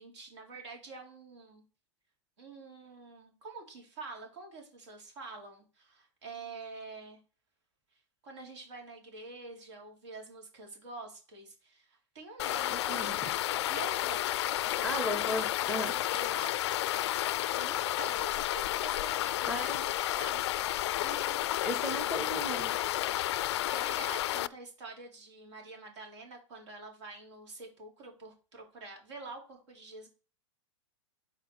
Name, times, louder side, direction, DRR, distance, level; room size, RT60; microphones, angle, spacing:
voice 1, 0.0-1.6 2.4-7.2 8.2-14.4 14.7-15.2 16.1-16.5 16.9-20.4 21.0-21.5 23.7-30.1, right 3 dB, 70° right, 1 dB, 3.7 m, -47 dB
sound 1, 12.4-24.5, left 14 dB, 55° left, 0.4 m, -31 dB
voice 2, 12.7-13.3 14.8-16.0 19.5-19.8 21.6-22.7, equal, 5° right, 7 dB, 0.8 m, -36 dB
5.8 x 4.5 x 6.2 m, 0.36 s
hypercardioid pair, 145°, 16 cm